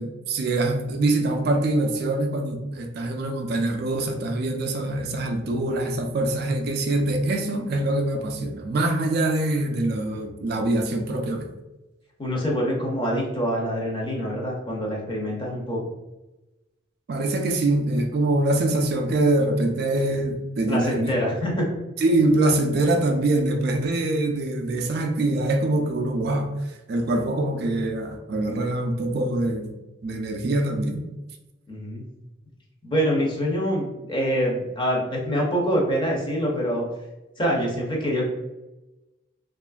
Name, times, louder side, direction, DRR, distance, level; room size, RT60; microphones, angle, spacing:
voice 1, 0.0-11.5 17.1-21.1 22.0-29.7 30.0-31.0, right 2 dB, 50° right, 4 dB, 0.3 m, -24 dB
voice 2, 12.2-15.8 20.7-21.7 31.7-32.0 32.8-36.8 37.4-38.3, equal, 25° left, -2 dB, 0.6 m, -25 dB
2.8 x 2.4 x 2.3 m, 1.0 s
head